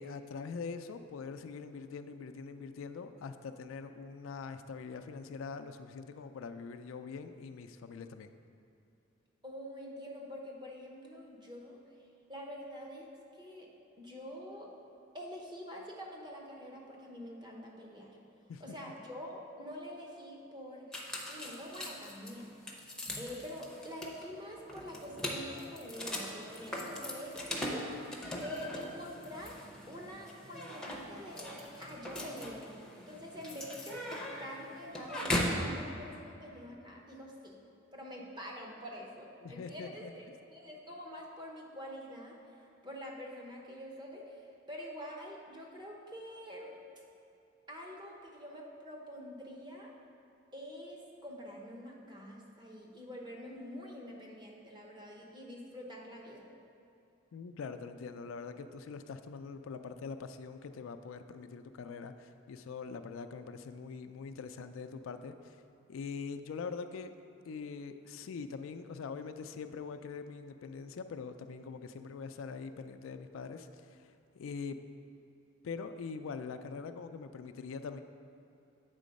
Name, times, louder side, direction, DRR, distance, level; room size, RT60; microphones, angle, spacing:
voice 1, 0.0-8.3 18.5-18.6 39.4-40.1 57.3-65.6 65.9-67.1 67.5-74.8 75.6-78.0, left 5 dB, 90° left, 9 dB, 0.4 m, -43 dB
voice 2, 9.4-11.8 12.3-13.1 13.3-13.7 14.0-14.7 15.1-18.1 18.6-21.0 21.3-22.5 23.2-27.9 28.3-32.7 33.1-34.1 34.4-37.6 37.9-42.4 42.8-44.4 44.7-46.7 47.7-49.9 50.5-56.5, equal, 25° right, -1 dB, 0.9 m, -46 dB
sound 1, 20.9-35.7, left 1 dB, 5° left, 0.7 m, -40 dB
8.2 x 3.8 x 5.2 m, 2.7 s
head